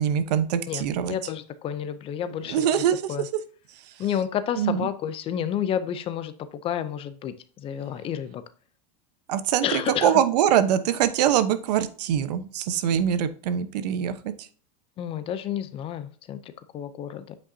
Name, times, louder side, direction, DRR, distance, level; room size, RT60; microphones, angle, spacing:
voice 1, 0.0-1.2 2.4-3.3 3.9-4.0 4.6-4.9 9.3-14.5, right 9 dB, 75° right, 12 dB, 0.9 m, -24 dB
voice 2, 0.7-2.7 3.1-3.2 4.0-8.4 9.6-10.1 15.0-17.3, left 9 dB, 25° left, 12 dB, 0.5 m, -30 dB
8.5 x 5.4 x 2.7 m, 0.43 s
supercardioid pair, 150°, 21 cm